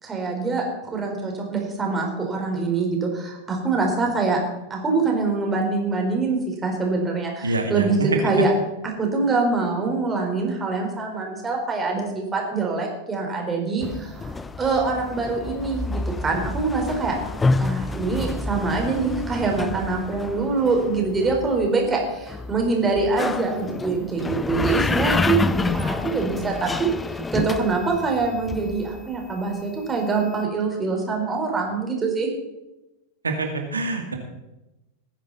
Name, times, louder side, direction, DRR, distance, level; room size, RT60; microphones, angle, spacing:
voice 1, 0.0-4.4 4.7-8.5 8.8-17.1 17.6-32.3, right 3 dB, 15° right, 1 dB, 4.2 m, -24 dB
voice 2, 7.4-8.1 33.2-34.2, right 3 dB, 75° right, 4 dB, 2.3 m, -26 dB
sound 1, 13.8-29.3, left 3 dB, 10° left, 0.6 m, -28 dB
19.5 x 10.5 x 4.1 m, 0.97 s
figure-of-eight pair, 90°, 0 cm